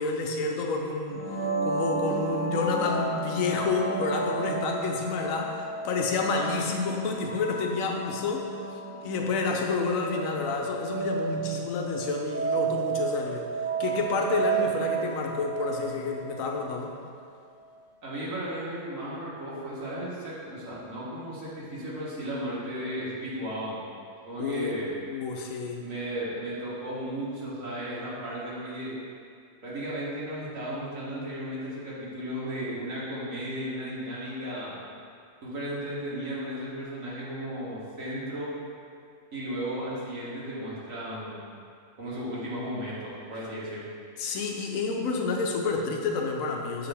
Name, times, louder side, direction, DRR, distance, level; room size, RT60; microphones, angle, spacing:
voice 1, 0.0-8.5 9.0-13.5 13.8-17.0 24.4-25.9 44.2-46.9, left 4 dB, 80° left, 1 dB, 1.1 m, -29 dB
sound 1, 1.1-16.8, right 4 dB, 15° right, 0.7 m, -32 dB
voice 2, 18.0-23.8 24.3-24.9 25.8-28.9 29.6-34.8 35.4-38.5 39.3-41.4 42.0-43.8, equal, 80° right, -7 dB, 1.7 m, -35 dB
6.5 x 4.9 x 3.4 m, 2.3 s
omnidirectional pair, 1.4 m